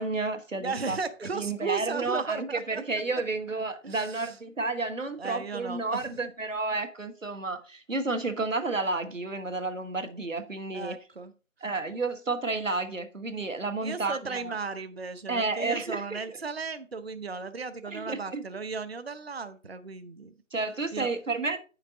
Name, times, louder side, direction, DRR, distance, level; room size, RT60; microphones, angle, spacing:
voice 1, 0.0-1.0 1.3-11.0 11.6-14.5 15.3-16.4 17.8-18.4 20.5-21.6, right 3 dB, 70° right, 1.7 m, -31 dB
voice 2, 0.6-2.8 3.8-4.3 5.2-6.2 10.7-11.3 13.8-20.3 20.9-21.1, right 4 dB, 50° right, 0.8 m, -35 dB
9.3 x 5.8 x 4.0 m
figure-of-eight pair, 160°, 40 cm